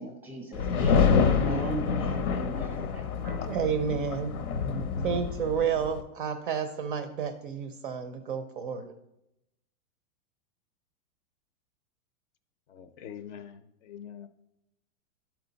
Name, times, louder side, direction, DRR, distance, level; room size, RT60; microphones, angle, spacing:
voice 1, 0.0-3.1, equal, 5° right, 2 dB, 0.7 m, -37 dB
sound 1, 0.6-6.0, left 5 dB, 80° left, 0.9 m, -27 dB
voice 2, 3.2-4.3 5.0-8.9, right 7 dB, 40° right, 8 dB, 0.4 m, -31 dB
voice 3, 12.7-14.3, left 9 dB, 55° left, 11 dB, 0.6 m, -44 dB
11.0 x 4.5 x 3.9 m, 0.86 s
supercardioid pair, 160°, 44 cm